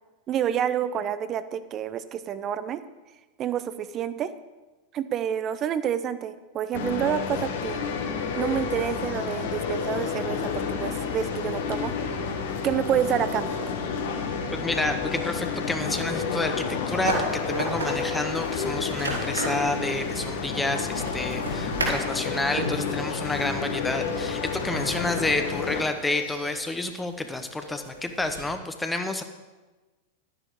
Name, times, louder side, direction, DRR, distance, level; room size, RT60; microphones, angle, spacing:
voice 1, 0.3-2.8 3.4-4.3 4.9-7.8 8.3-12.1 12.6-13.6, right 9 dB, 30° right, 13 dB, 0.7 m, -28 dB
sound 1, 6.7-25.8, left 5 dB, 55° left, 1.4 m, -30 dB
voice 2, 14.5-29.2, left 2 dB, 10° left, 7 dB, 0.9 m, -29 dB
sound 2, 16.8-28.5, right 1 dB, 80° right, 3.4 m, -36 dB
12.0 x 10.0 x 4.8 m, 1.2 s
figure-of-eight pair, 90°, 0 cm